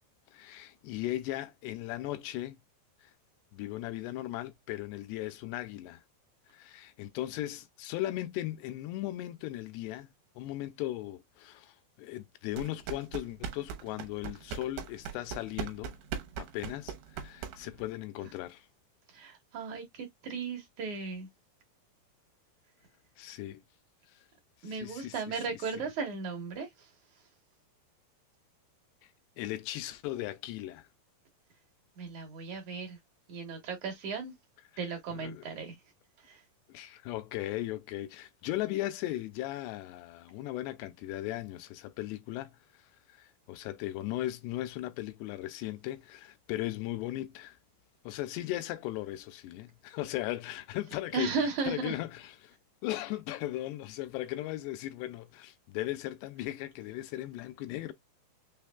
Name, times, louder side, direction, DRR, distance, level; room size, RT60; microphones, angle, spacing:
voice 1, 0.3-2.6 3.0-3.1 3.5-6.0 6.5-16.0 16.4-18.7 23.2-23.6 24.2-24.3 24.6-25.4 25.7-25.9 29.4-30.9 35.1-35.5 36.7-47.6 48.0-52.6 52.8-57.9, left 15 dB, 90° left, 2.8 m, -37 dB
sound 1, 12.5-17.9, right 7 dB, 80° right, 2.8 m, -40 dB
voice 2, 19.1-21.3 24.6-26.9 32.0-33.0 33.3-34.3 34.8-35.8 36.2-36.4 51.1-52.0, right 4 dB, 65° right, 2.0 m, -36 dB
6.3 x 3.3 x 2.2 m
omnidirectional pair, 4.8 m